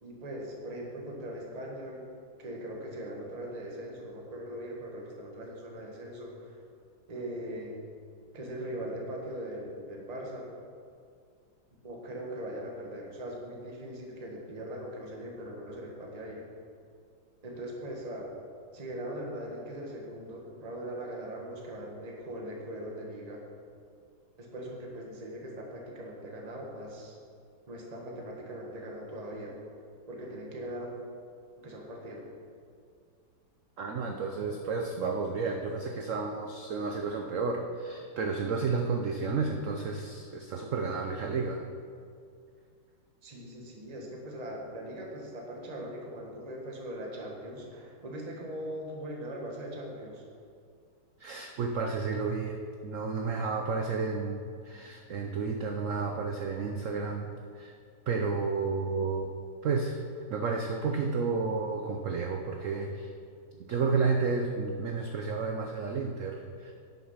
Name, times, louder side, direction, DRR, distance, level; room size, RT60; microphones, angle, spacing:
voice 1, 0.0-2.1 2.4-6.6 7.1-7.8 8.3-10.5 11.8-16.4 17.4-18.2 18.7-23.4 24.4-27.2 27.7-29.5 30.1-30.9 31.6-32.2 43.2-50.2, right 1 dB, 25° right, -1 dB, 1.2 m, -40 dB
voice 2, 33.8-41.6 51.2-57.3 57.5-57.7 58.1-59.3 59.6-60.0 60.3-63.1 63.7-66.7, right 4 dB, 75° right, 3 dB, 0.7 m, -31 dB
10.5 x 6.2 x 5.6 m, 2.3 s
omnidirectional pair, 2.1 m